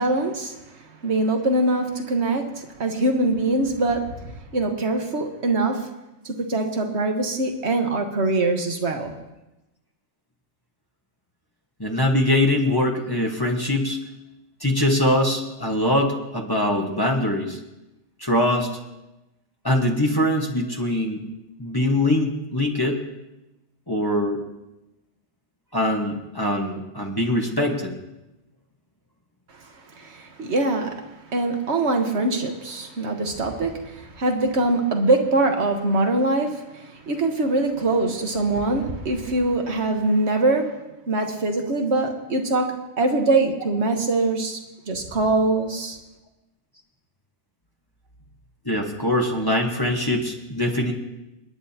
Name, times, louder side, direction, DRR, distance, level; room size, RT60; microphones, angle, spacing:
voice 1, 0.0-5.9 6.2-9.2 29.5-40.8 41.1-44.6 44.9-46.0, right 2 dB, 65° right, 4 dB, 1.7 m, -23 dB
voice 2, 11.8-14.0 14.6-17.6 18.2-18.7 19.6-21.2 21.6-23.0 23.9-24.4 25.7-28.0 48.6-50.9, left 1 dB, 20° left, 0 dB, 1.5 m, -22 dB
30.0 x 10.0 x 2.9 m, 0.98 s
omnidirectional pair, 1.2 m